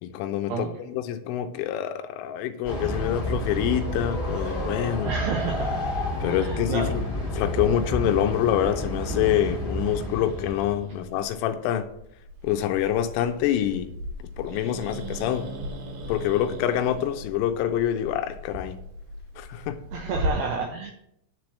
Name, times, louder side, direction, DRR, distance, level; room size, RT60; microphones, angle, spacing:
voice 1, 0.0-5.1 6.2-7.0 7.3-11.9 12.4-13.9 14.4-15.5 16.1-18.8 19.4-19.8, left 10 dB, 80° left, 8 dB, 3.0 m, -26 dB
Train, 2.6-10.8, equal, 60° left, 0.5 m, -30 dB
voice 2, 5.0-5.8 6.2-6.9 19.9-20.9, right 5 dB, 80° right, 2 dB, 2.4 m, -30 dB
Growling, 9.8-20.3, equal, 65° right, 2.2 m, -38 dB
10.5 x 4.5 x 7.3 m, 0.75 s
omnidirectional pair, 6.0 m